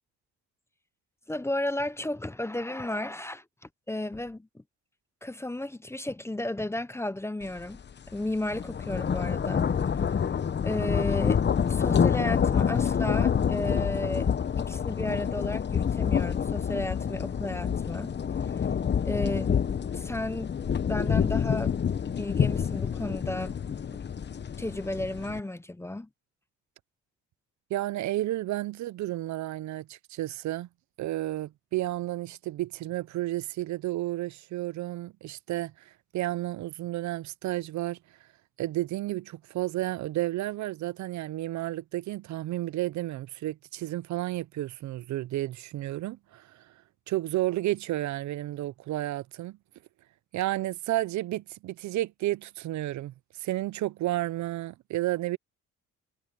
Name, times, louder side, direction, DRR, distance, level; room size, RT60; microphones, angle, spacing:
voice 1, 1.3-3.4 3.9-4.6 5.2-7.8 8.1-9.7 10.6-14.3 14.6-18.1 19.0-20.6 20.9-21.9 22.2-23.6 23.9-24.0 24.6-26.1, left 1 dB, 10° left, 0.7 m, -33 dB
sound 1, 7.6-7.8 8.1-25.4, left 7 dB, 35° left, 0.9 m, -27 dB
voice 2, 27.7-30.7 31.0-38.0 38.6-46.7 47.1-49.6 50.3-55.4, right 15 dB, 70° right, 0.5 m, -32 dB
cardioid pair, 90°, 30 cm